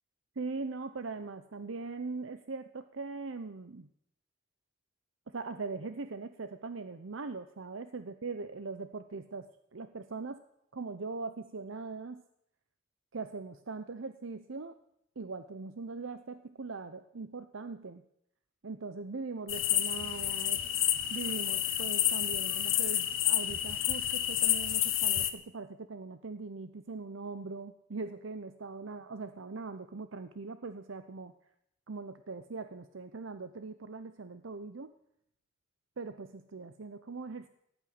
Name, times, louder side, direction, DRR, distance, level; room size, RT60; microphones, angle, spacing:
voice 1, 0.4-3.9 5.3-10.4 10.7-12.2 13.1-14.8 15.2-18.0 18.6-31.3 31.9-34.9 36.0-37.5, right 3 dB, 75° right, 10 dB, 0.8 m, -41 dB
sound 1, 19.5-25.3, left 12 dB, 85° left, 1.5 m, -29 dB
16.0 x 8.9 x 9.6 m, 0.75 s
head